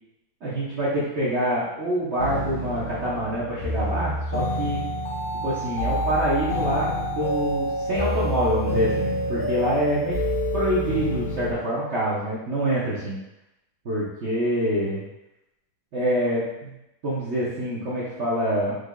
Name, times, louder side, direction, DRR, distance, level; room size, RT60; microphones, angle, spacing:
voice 1, 0.4-4.8 5.4-10.2 10.5-13.2 13.8-15.0 15.9-16.7 17.0-18.7, right 1 dB, 50° right, -9 dB, 1.0 m, -26 dB
sound 1, 2.2-11.5, equal, 65° left, 1.5 m, -27 dB
5.1 x 3.3 x 2.2 m, 0.92 s
omnidirectional pair, 1.8 m